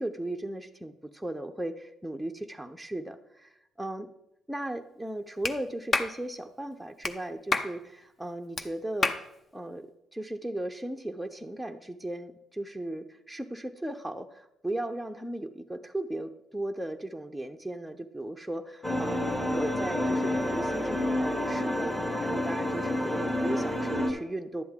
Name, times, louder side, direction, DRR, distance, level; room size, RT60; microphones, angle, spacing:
voice 1, 0.0-3.5 3.8-4.1 4.5-9.1 9.5-9.9 10.1-24.6, right 1 dB, ahead, 3 dB, 0.6 m, -36 dB
Clapping, 5.4-5.6 5.9-6.1 7.0-7.2 7.5-7.7 8.6-8.7 9.0-9.2, left 3 dB, 40° left, 0.7 m, -27 dB
sound 1, 18.8-24.1, left 1 dB, 20° left, 1.4 m, -29 dB
11.0 x 7.8 x 3.6 m, 0.84 s
cardioid pair, 90°, 0 cm